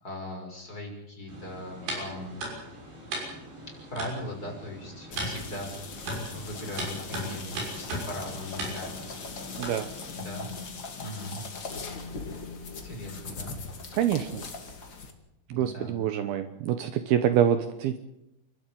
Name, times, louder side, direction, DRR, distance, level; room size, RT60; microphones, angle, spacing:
voice 1, 0.0-2.4 3.7-9.0 10.1-10.5 11.0-11.4 12.8-13.5 15.5-16.1, left 1 dB, 20° left, 0 dB, 5.9 m, -39 dB
sound 1, 1.3-10.1, right 1 dB, 60° right, 8.4 m, -38 dB
sound 2, 5.1-15.1, left 4 dB, 40° left, 1.6 m, -40 dB
voice 2, 13.9-14.4 15.5-18.0, right 10 dB, 85° right, 9 dB, 2.1 m, -26 dB
29.0 x 12.5 x 9.2 m, 0.84 s
omnidirectional pair, 5.8 m